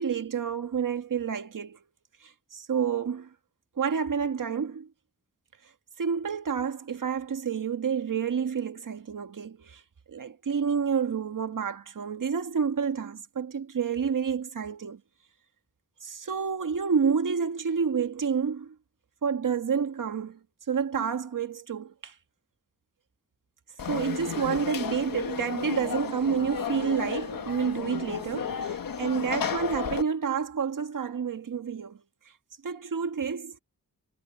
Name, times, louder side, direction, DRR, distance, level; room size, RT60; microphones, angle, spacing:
voice 1, 0.0-1.8 2.2-3.3 3.8-4.9 6.0-9.8 10.1-15.0 16.0-18.8 19.2-20.4 20.7-22.1 23.9-32.0 32.6-33.6, right 6 dB, 70° right, 1.8 m, -29 dB
Conversation / Crowd, 23.8-30.0, left 7 dB, 80° left, 1.4 m, -33 dB
wide cardioid pair, 125°, 33 cm